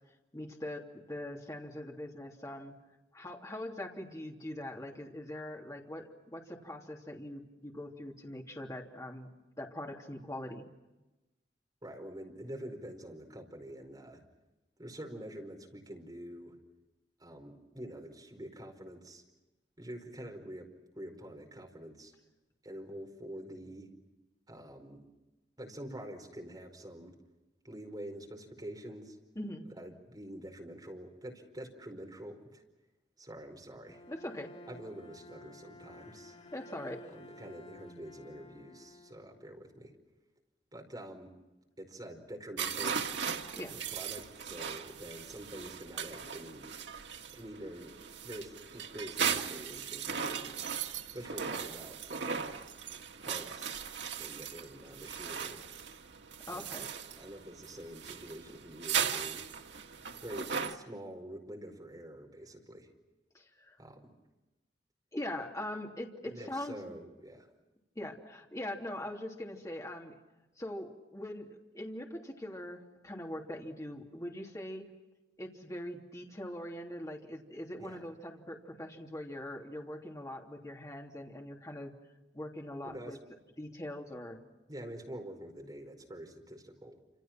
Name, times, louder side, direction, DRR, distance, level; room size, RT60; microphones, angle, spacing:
voice 1, 0.3-2.7 3.1-9.3 9.6-10.7 29.3-29.6 34.1-34.5 36.5-37.0 43.6-43.8 56.5-56.9 63.3-63.8 65.1-66.8 67.9-70.2 70.6-74.8 75.4-81.9 82.3-83.2 83.6-84.4, left 1 dB, 20° left, 1 dB, 3.1 m, -42 dB
voice 2, 11.8-14.2 14.8-16.6 17.2-19.2 19.8-20.7 20.9-22.1 22.6-23.9 24.5-25.0 25.6-27.2 27.6-29.2 29.6-32.6 33.2-34.0 34.7-36.4 37.1-39.9 40.7-41.3 41.8-43.0 43.7-46.7 47.3-48.0 48.2-50.6 51.1-52.6 53.2-53.9 54.2-55.7 56.5-59.5 60.1-62.9 63.8-64.1 66.2-67.5 77.8-78.0 82.8-83.2 84.7-87.0, right 1 dB, 25° right, 2 dB, 4.9 m, -46 dB
Bowed string instrument, 33.8-39.8, left 1 dB, 40° left, 2.9 m, -53 dB
sound 1, 42.6-60.8, right 7 dB, 90° right, 1.8 m, -38 dB
28.5 x 27.5 x 6.1 m, 1.1 s
head